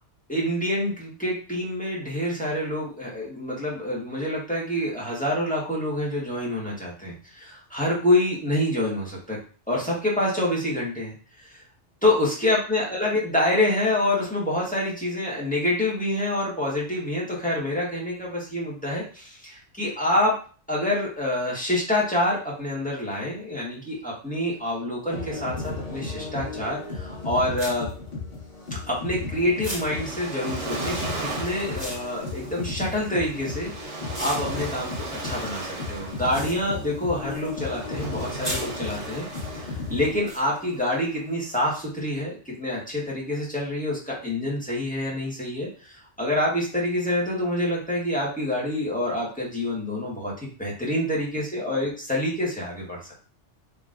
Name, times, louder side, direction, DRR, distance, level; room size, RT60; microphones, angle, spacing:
voice 1, 0.3-9.4 9.7-11.1 12.0-20.3 20.7-27.9 28.9-33.7 34.2-34.9 35.2-53.0, left 1 dB, 5° left, -5 dB, 1.4 m, -27 dB
sound 1, 25.1-40.2, left 3 dB, 50° left, 1.6 m, -35 dB
sound 2, 25.6-25.7 26.9-27.0 27.6-29.2 29.6-33.7 34.1-37.6 37.9-39.5 40.3-40.4, right 1 dB, 15° right, 2.3 m, -39 dB
Waves surf, 29.2-41.6, right 2 dB, 70° right, 1.4 m, -37 dB
5.8 x 3.2 x 2.5 m, 0.39 s
omnidirectional pair, 1.2 m